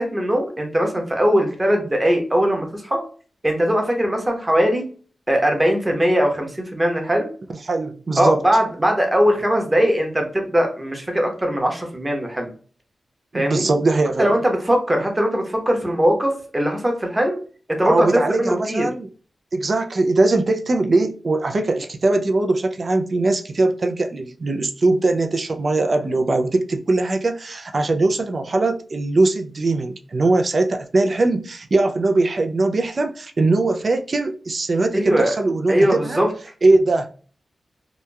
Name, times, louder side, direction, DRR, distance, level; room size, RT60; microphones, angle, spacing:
voice 1, 0.0-3.0 3.4-4.8 5.3-7.3 8.2-12.5 13.3-13.6 14.2-17.4 17.7-18.9 34.9-35.3 35.7-36.3, equal, 20° right, 0.8 m, -20 dB
voice 2, 7.7-8.4 13.3-14.4 17.8-19.1 19.5-35.8 36.0-36.2 36.6-37.1, right 2 dB, 50° right, 0.3 m, -20 dB
2.8 x 2.2 x 2.2 m
cardioid pair, 75°, 0 cm